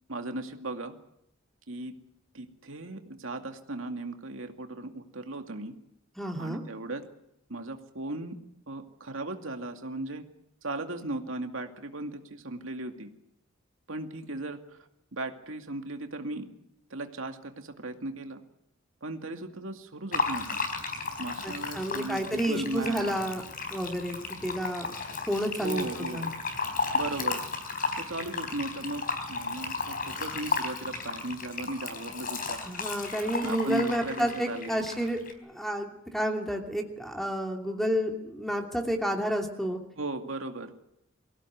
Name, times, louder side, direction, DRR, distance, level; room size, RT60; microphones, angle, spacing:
voice 1, 0.1-1.0 1.7-1.9 2.3-5.7 6.4-7.0 7.5-8.4 8.7-10.2 10.6-13.1 13.9-14.8 15.1-16.5 16.9-18.4 19.0-20.6 21.2-23.1 25.6-26.3 26.9-27.4 28.0-29.0 29.3-32.6 33.2-34.8 40.0-40.7, right 2 dB, 85° right, 5 dB, 2.3 m, -37 dB
voice 2, 6.2-6.6 21.4-23.4 23.7-24.9 25.3-25.9 26.1-26.3 32.6-39.8, equal, ahead, 3 dB, 2.8 m, -30 dB
Fill (with liquid), 20.1-35.3, left 4 dB, 45° left, 4.1 m, -34 dB
24.0 x 16.5 x 9.3 m, 0.80 s
head